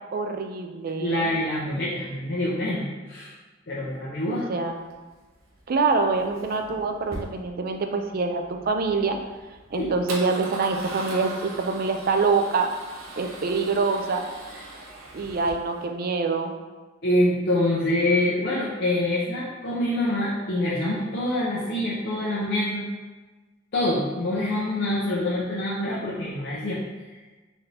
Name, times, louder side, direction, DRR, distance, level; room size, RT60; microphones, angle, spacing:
voice 1, 0.1-1.3 4.3-4.7 5.7-9.2 9.7-12.7 13.2-14.2 15.1-16.5, right 4 dB, 45° right, 5 dB, 0.4 m, -25 dB
voice 2, 1.0-3.3 3.7-4.5 9.7-9.9 17.0-22.8 23.7-26.8, left 1 dB, 55° left, -8 dB, 0.7 m, -25 dB
Male speech man speaking / Car / Engine starting, 4.8-15.9, right 2 dB, 90° right, 0.7 m, -41 dB
4.1 x 2.7 x 3.3 m, 1.2 s
head